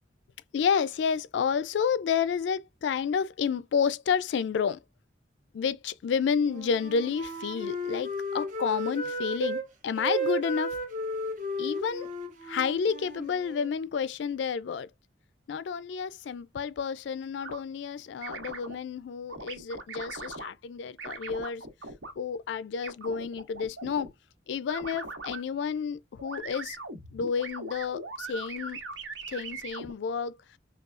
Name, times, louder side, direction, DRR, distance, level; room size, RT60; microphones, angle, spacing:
voice 1, 0.5-4.8 5.5-10.8 11.6-12.1 12.4-14.9 15.5-21.6 22.2-24.1 24.5-26.8 27.1-28.8 29.3-30.4, left 6 dB, 75° left, 0.3 m, -30 dB
Wind instrument woodwind instrument, 6.4-9.7 10.0-13.7, right 1 dB, 45° right, 1.1 m, -34 dB
sound 1, 17.4-17.6 18.2-18.8 19.3-20.5 21.0-22.1 22.8-24.1 24.7-25.4 26.2-29.9, right 3 dB, 85° right, 1.2 m, -40 dB
5.3 x 2.3 x 2.4 m
head